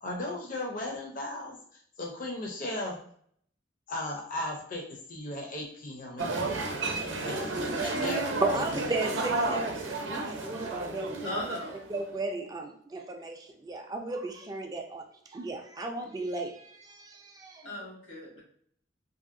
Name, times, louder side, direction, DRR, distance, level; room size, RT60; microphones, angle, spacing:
voice 1, 0.0-3.0 3.9-8.8, left 1 dB, 45° left, -1 dB, 0.5 m, -37 dB
sound 1, 6.2-12.0, right 2 dB, 80° right, 0.5 m, -32 dB
voice 2, 7.5-8.0 11.2-11.7 17.6-18.4, left 1 dB, 85° left, -3 dB, 1.2 m, -38 dB
voice 3, 8.4-11.6 11.9-15.0 15.3-17.6, right 3 dB, 20° right, 3 dB, 0.3 m, -34 dB
2.7 x 2.7 x 2.5 m, 0.62 s
head